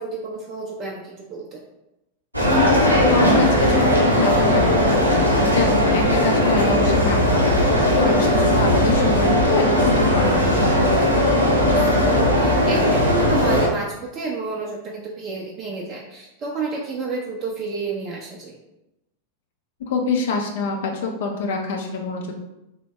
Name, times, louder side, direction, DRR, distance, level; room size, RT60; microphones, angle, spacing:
voice 1, 0.0-1.6 8.0-8.4 11.6-18.6, right 4 dB, 30° right, -2 dB, 0.4 m, -30 dB
sound 1, 2.3-13.7, left 1 dB, 85° right, 0.6 m, -18 dB
voice 2, 2.6-11.1 19.9-22.3, left 4 dB, 55° left, 2 dB, 0.4 m, -26 dB
3.3 x 2.0 x 3.0 m, 0.91 s
figure-of-eight pair, 90°, 0 cm